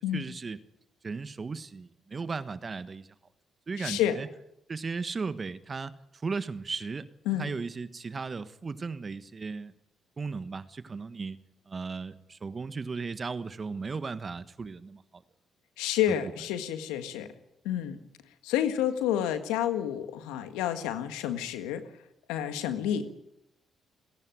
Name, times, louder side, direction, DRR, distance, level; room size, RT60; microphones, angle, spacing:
voice 1, 0.1-0.6 1.0-3.1 3.7-4.3 4.7-5.9 6.2-9.7 10.2-11.4 11.7-15.2 16.1-16.2, right 4 dB, 40° right, 13 dB, 1.3 m, -36 dB
voice 2, 3.8-4.2 7.2-7.5 15.8-17.3 17.6-18.0 18.4-21.8 22.3-23.1, left 10 dB, 85° left, 9 dB, 1.7 m, -29 dB
29.5 x 11.0 x 9.3 m, 0.82 s
supercardioid pair, 60°, 0 cm